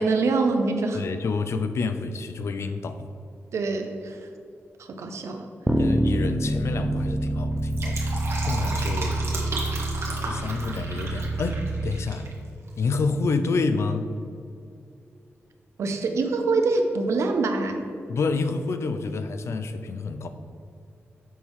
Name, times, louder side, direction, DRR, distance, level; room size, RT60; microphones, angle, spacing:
voice 1, 0.0-1.0 3.5-4.2 4.9-5.5 15.8-17.9, right 3 dB, 90° right, 5 dB, 0.8 m, -24 dB
voice 2, 0.9-3.1 5.7-9.2 10.2-12.3 12.8-14.1 18.1-20.3, left 4 dB, 70° left, 9 dB, 0.5 m, -28 dB
sound 1, 5.7-11.9, right 1 dB, 10° right, 0.5 m, -27 dB
Fill (with liquid), 7.5-12.3 12.6-12.7, right 2 dB, 65° right, 1.5 m, -34 dB
7.4 x 6.2 x 3.6 m, 2.5 s
wide cardioid pair, 100°, 5 cm